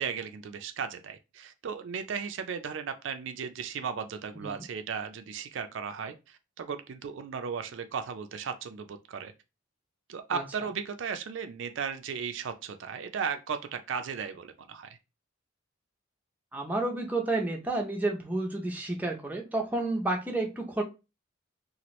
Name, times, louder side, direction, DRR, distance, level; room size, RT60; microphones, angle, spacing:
voice 1, 0.0-9.3 10.1-15.0, right 6 dB, 65° right, 0.4 m, -36 dB
voice 2, 16.5-20.8, right 2 dB, 10° right, 0.5 m, -30 dB
2.9 x 2.4 x 3.0 m
head